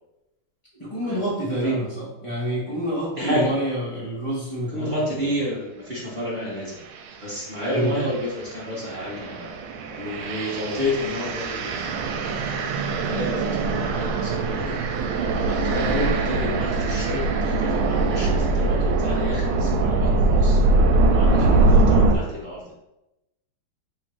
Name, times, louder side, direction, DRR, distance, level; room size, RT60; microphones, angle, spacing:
voice 1, 0.8-4.9 7.7-8.0 15.8-16.0, right 1 dB, 20° left, -7 dB, 0.9 m, -27 dB
voice 2, 3.2-3.6 4.7-6.8 7.2-9.5 9.9-11.9 12.2-14.8 15.4-20.6 21.1-22.7, left 1 dB, 45° right, -7 dB, 0.6 m, -30 dB
sound 1, 6.9-7.1 7.7-22.2, right 3 dB, 80° right, 1.4 m, -22 dB
3.7 x 2.6 x 4.5 m, 0.92 s
omnidirectional pair, 2.3 m